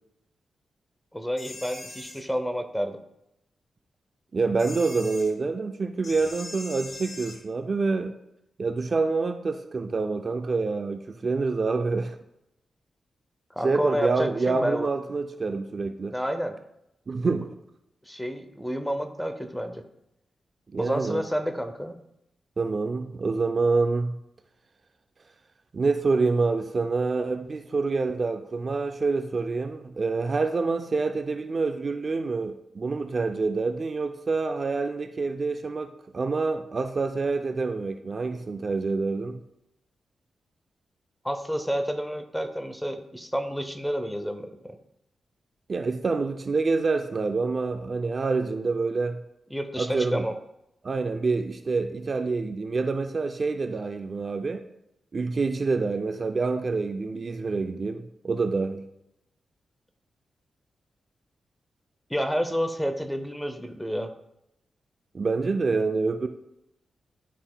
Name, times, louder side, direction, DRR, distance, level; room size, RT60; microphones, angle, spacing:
voice 1, 1.1-3.0 13.5-14.9 16.1-16.5 18.1-19.8 20.8-21.9 41.2-44.8 49.5-50.3 62.1-64.1, equal, 5° left, 7 dB, 0.6 m, -29 dB
sound 1, 1.4-2.2 4.6-5.3 6.0-7.4, left 2 dB, 50° left, 1.1 m, -41 dB
voice 2, 4.3-8.1 8.6-12.2 13.6-16.1 17.1-17.5 20.7-21.2 22.6-24.2 25.7-39.4 45.7-49.2 49.8-50.2 50.8-54.6 55.1-58.9 65.1-66.3, right 4 dB, 40° right, 7 dB, 0.4 m, -27 dB
10.0 x 5.7 x 2.3 m, 0.83 s
wide cardioid pair, 120°, 0 cm